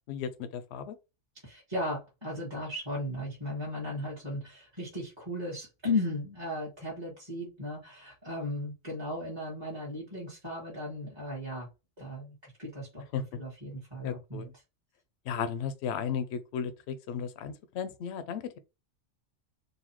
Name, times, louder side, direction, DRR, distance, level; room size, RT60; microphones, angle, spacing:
voice 1, 0.1-1.0 13.1-13.2 14.0-14.5 15.3-18.6, left 7 dB, 65° left, 0.8 m, -35 dB
voice 2, 1.4-11.7 12.0-13.1 13.3-14.5, left 1 dB, 20° right, 1.5 m, -36 dB
4.0 x 2.7 x 3.0 m
omnidirectional pair, 1.3 m